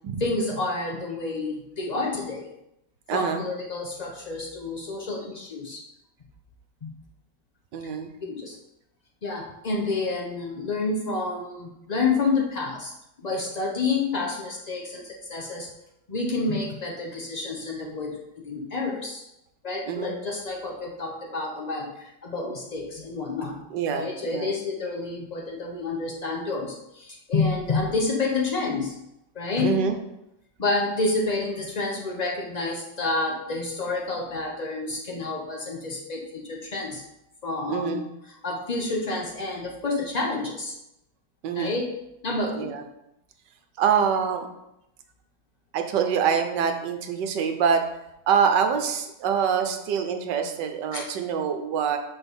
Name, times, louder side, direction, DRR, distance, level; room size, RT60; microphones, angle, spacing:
voice 1, 0.2-2.5 3.1-5.8 6.8-6.9 8.2-8.6 9.2-12.9 13.2-15.7 16.1-19.3 19.6-23.6 23.9-28.9 29.3-29.8 30.6-37.0 37.4-38.0 38.4-40.7 41.5-41.9 42.2-42.7 50.9-51.1, left 3 dB, 70° left, -1 dB, 0.4 m, -29 dB
voice 2, 3.1-3.4 7.7-8.1 19.9-20.1 23.7-24.5 29.6-30.0 37.7-38.0 41.4-41.7 42.5-42.8 43.8-44.5 45.7-47.8 48.3-52.0, right 7 dB, 80° right, 6 dB, 1.4 m, -25 dB
6.1 x 3.9 x 5.3 m, 0.85 s
omnidirectional pair, 1.9 m